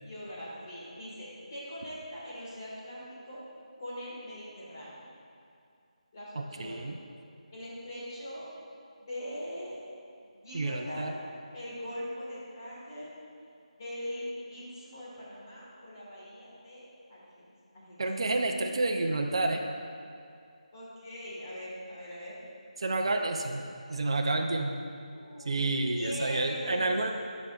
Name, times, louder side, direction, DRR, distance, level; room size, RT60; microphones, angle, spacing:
voice 1, 0.0-3.4 3.8-5.0 6.1-6.9 7.5-8.5 9.0-9.8 10.3-11.1 11.5-13.1 13.8-17.4 17.7-18.0 20.7-22.4 25.1-26.8, equal, 25° left, -8 dB, 1.7 m, -41 dB
voice 2, 6.3-7.0 10.5-11.1 18.0-19.6 22.8-23.6 23.9-24.8 25.4-27.1, right 2 dB, 45° right, 3 dB, 0.5 m, -29 dB
12.5 x 5.2 x 2.4 m, 2.4 s
figure-of-eight pair, 175°, 4 cm